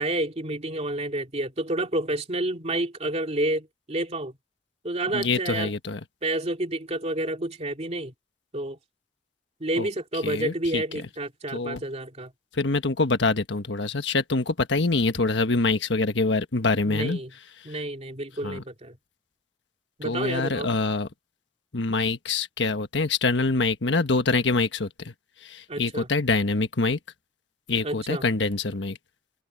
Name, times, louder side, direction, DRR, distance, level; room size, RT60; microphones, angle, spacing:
voice 1, 0.0-4.3 4.8-5.8 6.2-8.1 8.5-8.8 9.6-12.3 16.9-17.3 17.6-19.0 20.0-20.8 25.7-26.1 27.8-28.3, right 1 dB, 35° right, 2.7 m, -29 dB
voice 2, 5.1-6.0 9.8-9.9 10.2-10.8 11.5-11.8 12.5-17.2 18.4-18.6 20.0-21.1 21.7-25.1 25.4-27.0 27.7-29.0, left 3 dB, 70° left, 1.4 m, -25 dB
head